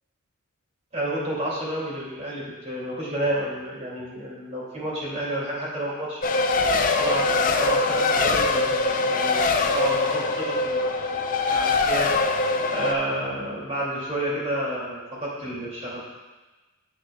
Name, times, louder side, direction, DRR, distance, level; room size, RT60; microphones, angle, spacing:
voice 1, 0.9-6.2 6.6-12.1 12.7-16.0, right 1 dB, 30° right, -5 dB, 2.4 m, -30 dB
Race car auto racing, 6.2-12.9, left 3 dB, 40° left, 0.4 m, -23 dB
10.0 x 7.7 x 2.3 m, 1.2 s
head